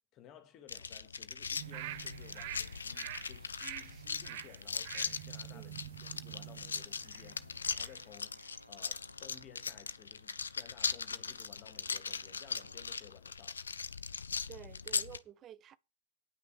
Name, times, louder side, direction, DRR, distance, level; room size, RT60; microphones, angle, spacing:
voice 1, 0.1-13.6, left 10 dB, 35° left, 2.2 m, -57 dB
sound 1, 0.7-15.2, left 5 dB, 75° left, 0.6 m, -40 dB
sound 2, 1.5-13.0, right 1 dB, 85° right, 1.0 m, -63 dB
sound 3, 1.6-8.0 8.4-8.5, right 14 dB, 50° right, 0.9 m, -47 dB
voice 2, 5.5-5.8 14.5-15.8, right 10 dB, 30° right, 0.5 m, -51 dB
10.0 x 6.0 x 6.1 m
figure-of-eight pair, 90°, 0 cm